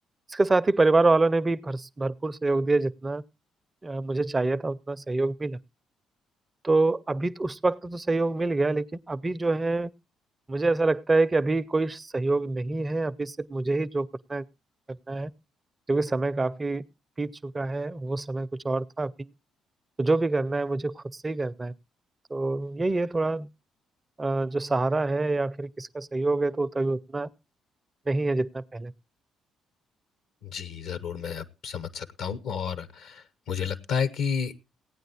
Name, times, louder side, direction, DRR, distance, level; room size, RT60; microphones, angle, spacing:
voice 1, 0.3-3.2 3.8-5.6 6.6-9.9 10.5-14.5 15.1-15.3 15.9-16.8 17.2-19.3 20.0-21.7 22.3-23.5 24.2-27.3 28.1-28.9, right 2 dB, 25° right, 0.6 m, -26 dB
voice 2, 30.4-34.5, left 7 dB, 70° left, 1.0 m, -31 dB
16.5 x 9.3 x 4.2 m
hypercardioid pair, 45°, 0 cm